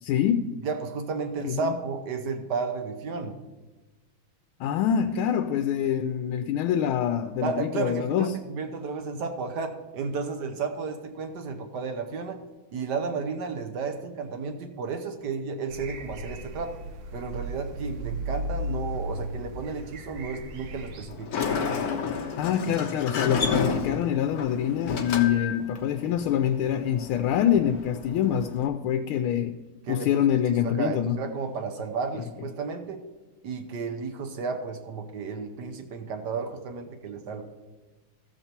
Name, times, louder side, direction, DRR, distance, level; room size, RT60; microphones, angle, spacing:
voice 1, 0.0-0.4 1.4-1.8 4.6-8.3 22.4-29.5 29.9-31.1 32.2-32.3, left 9 dB, 85° left, 7 dB, 1.4 m, -25 dB
voice 2, 0.6-3.4 7.4-12.4 12.7-16.8 17.1-21.4 29.9-33.0 33.4-37.5, right 5 dB, 60° right, 7 dB, 1.3 m, -33 dB
sound 1, 15.7-21.1, equal, 90° right, 1.8 m, -35 dB
Sliding door, 21.1-28.7, left 5 dB, 55° left, 1.2 m, -31 dB
14.0 x 6.8 x 4.3 m, 1.2 s
omnidirectional pair, 2.3 m